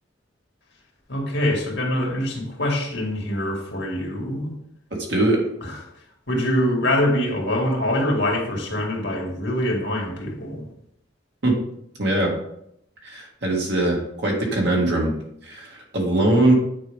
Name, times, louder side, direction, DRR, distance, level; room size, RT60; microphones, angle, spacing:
voice 1, 1.1-4.5 5.6-5.7 6.3-10.6, left 1 dB, 75° left, 0 dB, 2.1 m, -24 dB
voice 2, 5.1-5.4 11.4-11.6 12.0-12.3 13.0-15.1 15.4-16.5, right 1 dB, 65° right, -1 dB, 2.2 m, -21 dB
8.9 x 4.9 x 3.5 m, 0.74 s
head